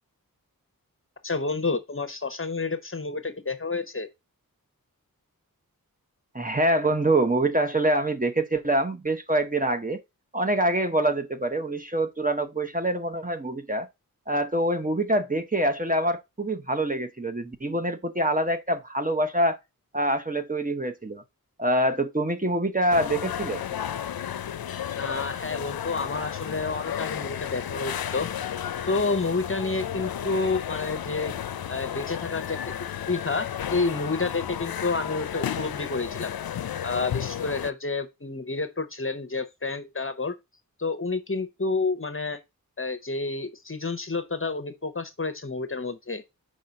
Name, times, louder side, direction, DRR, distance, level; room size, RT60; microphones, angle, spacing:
voice 1, 1.2-4.1 25.0-28.3 28.9-31.3 31.7-32.7 33.1-36.3 36.8-40.3 40.8-42.4 42.8-46.2, left 3 dB, 35° left, 0.9 m, -29 dB
voice 2, 6.3-10.0 10.3-13.9 14.3-19.6 19.9-21.2 21.6-23.6, right 1 dB, 25° right, 0.9 m, -25 dB
sound 1, 22.9-37.7, left 9 dB, 85° left, 0.5 m, -33 dB
5.0 x 4.2 x 5.2 m
wide cardioid pair, 50°, 36 cm